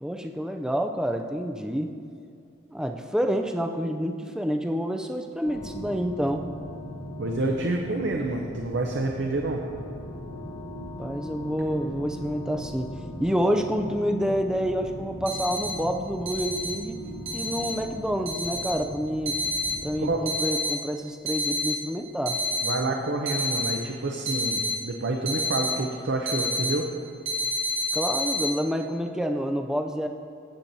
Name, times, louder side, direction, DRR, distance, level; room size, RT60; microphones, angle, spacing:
voice 1, 0.0-1.9 2.7-6.5 11.0-12.9 13.2-17.0 17.3-19.4 19.8-22.4 27.9-30.1, equal, 5° right, 4 dB, 0.3 m, -28 dB
sound 1, 5.4-20.2, left 1 dB, 70° left, 1.1 m, -39 dB
voice 2, 7.2-9.6 20.0-20.2 22.6-26.9, right 2 dB, 55° right, 1 dB, 0.6 m, -28 dB
sound 2, 15.3-15.7 16.3-16.7 17.3-17.7 18.3-18.7 19.3-19.7 20.3-20.7 21.3-21.7 22.3-22.7 23.3-23.7 24.3-24.7 25.3-25.7 26.3-26.7 27.3-28.5, equal, 75° right, 1.3 m, -28 dB
15.0 x 7.5 x 2.7 m, 2.3 s
head